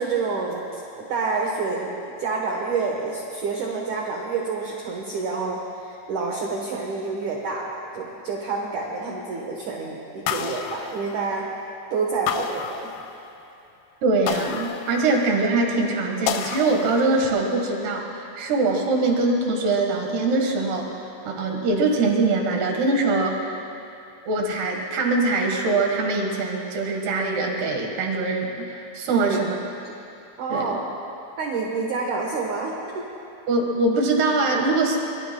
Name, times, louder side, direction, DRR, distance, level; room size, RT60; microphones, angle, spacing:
voice 1, 0.0-11.5 11.9-12.8 29.1-29.4 29.8-29.9 30.4-30.9 31.4-33.1, right 4 dB, 80° right, -1 dB, 1.7 m, -28 dB
sound 1, 10.3-11.6 12.3-13.4 14.3-15.5 16.3-17.4, left 9 dB, 85° left, 2.4 m, -31 dB
voice 2, 14.0-20.9 21.2-23.6 24.3-29.6 30.5-30.7 33.5-35.1, right 3 dB, 65° right, 1 dB, 3.3 m, -23 dB
24.0 x 24.0 x 2.3 m, 2.8 s
omnidirectional pair, 5.6 m